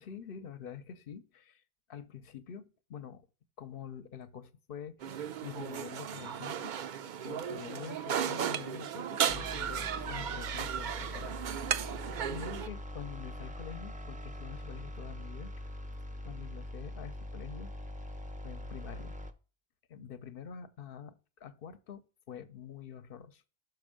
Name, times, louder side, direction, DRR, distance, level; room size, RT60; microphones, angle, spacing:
voice 1, 0.0-1.6 1.9-3.3 3.6-5.1 5.4-6.7 7.2-11.4 12.3-15.5 16.2-17.7 18.4-19.2 19.9-23.4, left 8 dB, 65° left, 0.9 m, -46 dB
sound 1, 5.0-12.7, right 8 dB, 55° right, 0.6 m, -35 dB
sound 2, 9.3-19.3, left 1 dB, 10° right, 0.5 m, -43 dB
6.3 x 5.3 x 5.0 m
omnidirectional pair, 1.0 m